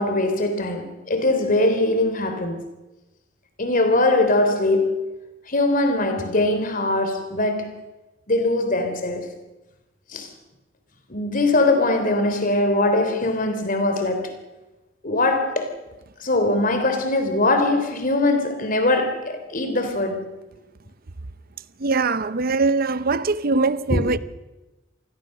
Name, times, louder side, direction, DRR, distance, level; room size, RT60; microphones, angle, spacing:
voice 1, 0.0-2.6 3.6-5.1 5.5-7.8 8.3-9.3 10.1-10.3 11.1-14.4 15.0-15.7 16.2-20.3 23.9-24.0, left 2 dB, 45° left, 3.5 m, -21 dB
voice 2, 21.8-24.2, right 3 dB, 50° right, 0.7 m, -22 dB
27.5 x 20.0 x 6.7 m
head